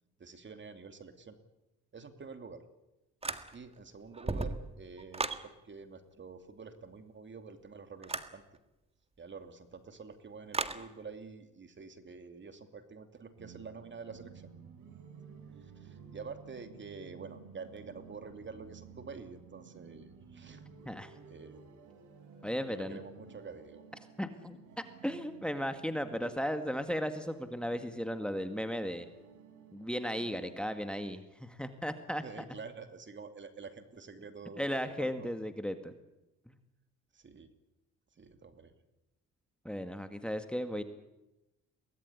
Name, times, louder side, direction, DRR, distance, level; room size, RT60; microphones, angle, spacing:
voice 1, 0.2-1.4 1.9-2.6 3.5-8.4 9.2-14.5 15.6-20.7 21.3-21.6 22.7-23.8 26.2-26.3 32.2-35.3 37.1-37.5 38.2-38.7, right 5 dB, 40° right, 8 dB, 2.7 m, -48 dB
sound 1, 3.2-3.8 4.1-5.5 8.0-8.3 10.5-10.8, right 3 dB, 20° right, 1.7 m, -35 dB
sound 2, 13.4-30.6, right 6 dB, 85° right, 3.9 m, -54 dB
voice 2, 20.8-21.2 22.4-23.0 24.2-24.6 25.0-29.1 29.7-32.2 34.6-35.9 36.5-36.6 39.6-40.8, equal, 5° left, 8 dB, 1.8 m, -35 dB
23.5 x 18.5 x 9.8 m, 0.96 s
cardioid pair, 90°, 30 cm